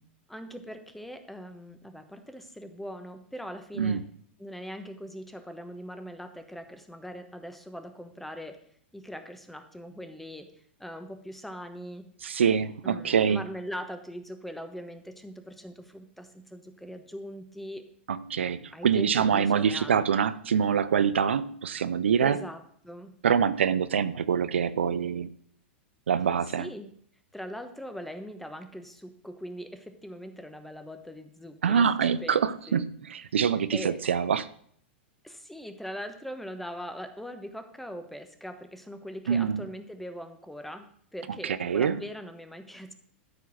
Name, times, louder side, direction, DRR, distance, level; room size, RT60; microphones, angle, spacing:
voice 1, 0.3-4.0 4.4-8.6 8.9-10.5 10.8-12.1 12.8-17.9 18.7-20.0 22.2-23.1 26.6-26.9 27.3-31.9 32.2-32.8 33.7-34.0 35.2-42.9, equal, 5° left, 8 dB, 1.2 m, -41 dB
voice 2, 12.2-13.4 18.1-22.4 23.2-25.4 26.1-26.7 31.6-34.5 39.3-39.7 41.4-42.0, right 7 dB, 80° right, 16 dB, 0.5 m, -25 dB
13.0 x 4.6 x 6.0 m, 0.62 s
hypercardioid pair, 100°, 6 cm